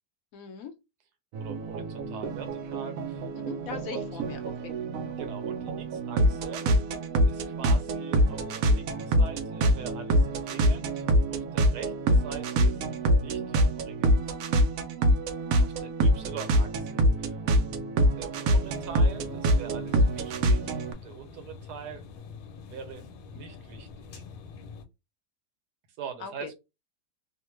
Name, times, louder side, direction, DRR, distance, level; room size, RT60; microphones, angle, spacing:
voice 1, 0.3-0.8 3.3-4.6 5.0-5.1 26.2-26.5, left 6 dB, 70° left, 0.9 m, -40 dB
sound 1, 1.3-20.9, right 1 dB, 70° right, 0.9 m, -25 dB
voice 2, 1.4-3.3 3.8-4.1 5.2-6.7 7.3-11.0 11.3-12.8 13.1-13.4 13.8-14.2 15.6-17.4 18.2-22.0 22.7-23.0 23.3-24.2 26.0-26.6, right 7 dB, 90° right, 1.3 m, -43 dB
sound 2, 18.6-24.8, left 5 dB, 90° left, 1.2 m, -46 dB
2.9 x 2.1 x 3.1 m
omnidirectional pair, 1.7 m